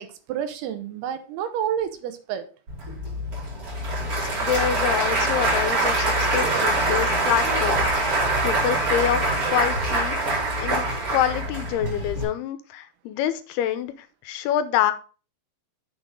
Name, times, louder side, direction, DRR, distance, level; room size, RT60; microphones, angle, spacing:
voice 1, 0.0-2.5, right 9 dB, 80° right, 2.9 m, -29 dB
Applause / Crowd, 2.7-12.2, right 2 dB, 35° right, 5.0 m, -24 dB
voice 2, 4.4-9.2 9.5-10.8 11.1-14.9, left 10 dB, 85° left, 2.7 m, -27 dB
8.3 x 6.6 x 3.7 m
omnidirectional pair, 4.7 m